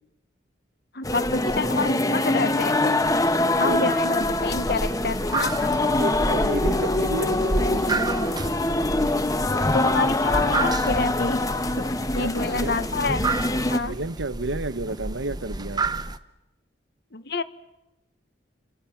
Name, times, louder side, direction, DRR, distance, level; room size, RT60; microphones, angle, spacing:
voice 1, 0.9-2.9 3.6-5.8 9.7-11.5 11.8-13.3 13.6-14.0 17.1-17.4, left 3 dB, 60° left, 12 dB, 1.3 m, -28 dB
sound 1, 1.0-13.8, left 2 dB, 20° left, 1.2 m, -24 dB
sound 2, 4.2-16.2, right 2 dB, 20° right, 1.0 m, -31 dB
voice 2, 5.7-8.1 12.1-12.8 13.8-15.8, right 2 dB, 90° right, 14 dB, 1.2 m, -31 dB
29.5 x 27.0 x 7.2 m, 0.96 s
head